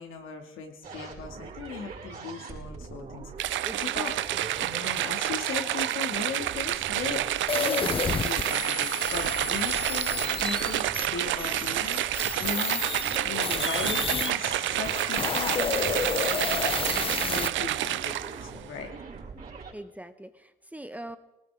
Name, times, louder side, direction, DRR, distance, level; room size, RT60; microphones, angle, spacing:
voice 1, 0.0-3.7 3.9-4.2 4.6-18.9, left 5 dB, 85° left, 3 dB, 2.5 m, -38 dB
sound 1, 0.8-19.7, right 5 dB, 45° right, 4.9 m, -42 dB
sound 2, 3.4-18.5, right 14 dB, 75° right, 0.5 m, -29 dB
voice 2, 3.6-4.5 19.3-21.2, right 1 dB, 5° right, 10 dB, 0.9 m, -43 dB
sound 3, 7.5-14.3 14.8-17.5, left 5 dB, 25° left, 0.6 m, -31 dB
20.0 x 18.5 x 3.8 m, 0.93 s
cardioid pair, 90°, 20 cm